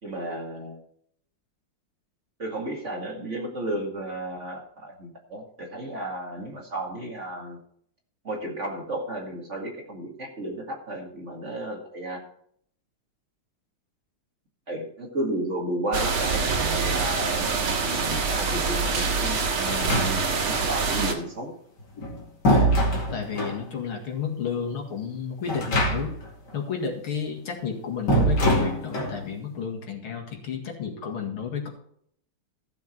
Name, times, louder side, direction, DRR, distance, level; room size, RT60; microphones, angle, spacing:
voice 1, 0.0-0.8 2.4-7.6 8.2-12.2 14.7-21.5, right 1 dB, 35° right, 0 dB, 2.2 m, -33 dB
sound 1, 15.9-21.1, right 4 dB, 80° right, 2.5 m, -25 dB
sound 2, 19.7-20.5 21.8-23.6 25.5-26.3 26.5-26.6 28.1-29.2, equal, 50° left, 2.9 m, -23 dB
voice 2, 23.1-26.1 26.5-31.7, left 6 dB, 80° left, 1 dB, 2.9 m, -32 dB
14.5 x 7.2 x 4.4 m, 0.65 s
omnidirectional pair, 2.3 m